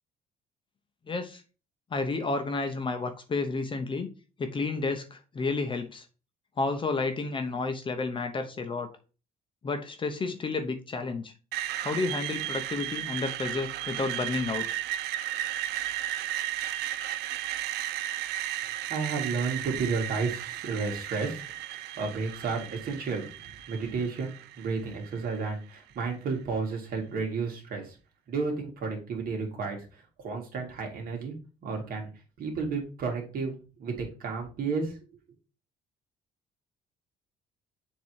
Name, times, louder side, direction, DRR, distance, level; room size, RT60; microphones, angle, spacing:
voice 1, 1.1-1.4 1.9-4.1 4.4-6.0 6.6-8.9 9.6-11.3 11.8-14.7, left 3 dB, 30° left, 6 dB, 0.9 m, -31 dB
Screech, 11.5-25.5, right 13 dB, 80° right, 0.4 m, -35 dB
voice 2, 18.9-21.4 22.0-23.2 23.7-28.0 28.3-31.3 31.6-32.1 32.4-33.5 33.8-35.0, right 4 dB, 60° right, 1 dB, 2.2 m, -32 dB
7.1 x 3.0 x 4.7 m, 0.34 s
cardioid pair, 110°, 17 cm